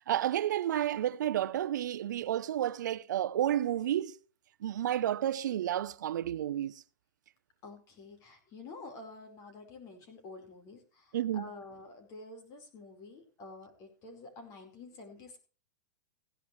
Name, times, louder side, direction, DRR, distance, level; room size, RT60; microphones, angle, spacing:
voice 1, 0.1-4.1 4.6-6.7 11.1-11.5, right 11 dB, 80° right, 0.7 m, -31 dB
voice 2, 7.6-15.4, left 3 dB, 35° left, 4.7 m, -49 dB
16.5 x 10.5 x 3.2 m
hypercardioid pair, 140°, 10 cm